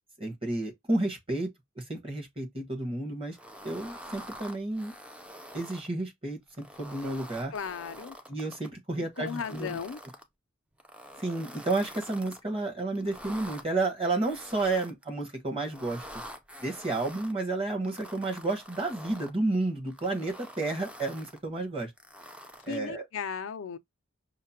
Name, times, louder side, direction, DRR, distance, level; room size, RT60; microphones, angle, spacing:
voice 1, 0.2-1.5 1.7-3.4 3.6-4.9 5.5-6.4 6.8-7.5 8.3-9.8 11.2-16.0 16.6-21.9 22.6-23.1, right 2 dB, 30° right, 1.2 m, -31 dB
sound 1, 3.3-5.9 6.5-8.7 9.2-10.2 10.8-12.4 13.0-13.6 14.3-15.1 15.6-17.3 17.8-19.3 19.9-21.4 22.0-22.9, equal, 5° right, 0.4 m, -46 dB
voice 2, 7.5-8.1 9.0-10.0 22.7-23.8, left 6 dB, 70° left, 0.4 m, -36 dB
5.6 x 2.1 x 2.8 m
head